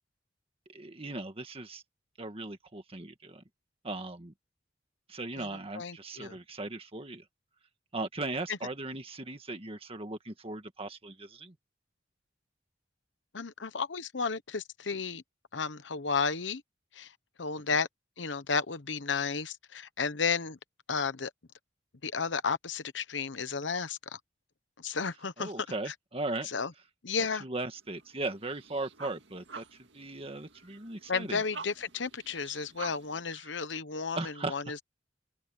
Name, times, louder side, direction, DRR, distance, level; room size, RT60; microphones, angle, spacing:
voice 1, 0.7-1.8 2.2-3.4 3.8-4.3 5.1-7.2 7.9-11.5 25.4-26.5 27.4-31.4 34.2-34.5, right 2 dB, 30° right, 1.7 m, -38 dB
voice 2, 5.7-6.4 8.5-8.6 13.3-15.2 15.5-16.6 16.9-17.1 17.4-17.9 18.2-20.6 20.9-21.3 22.0-24.2 24.8-25.5 25.9-26.0 26.4-26.7 27.0-27.5 31.1-34.8, left 5 dB, 80° left, 1.1 m, -33 dB
sound 1, 27.7-33.2, right 5 dB, 75° right, 2.0 m, -48 dB
open air
head